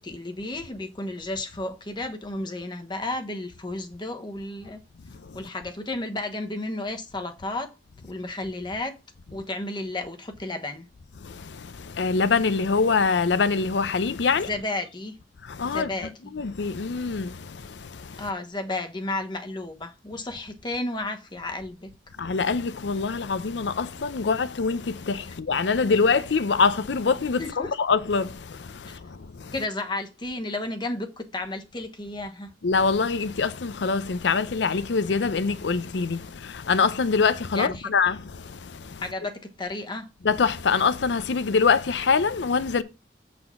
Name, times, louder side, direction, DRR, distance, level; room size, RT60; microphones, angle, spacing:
voice 1, 0.0-4.8 5.3-7.7 8.0-9.0 9.3-10.9 14.5-15.1 15.6-16.1 18.2-21.9 27.4-27.7 28.9-29.0 29.5-32.5 37.5-37.9 39.0-40.1, left 2 dB, 25° left, 1.1 m, -32 dB
voice 2, 11.2-14.5 15.4-15.9 16.3-18.2 22.2-29.5 32.6-39.0 40.2-42.8, left 5 dB, 75° left, 0.6 m, -24 dB
7.7 x 4.3 x 5.7 m
head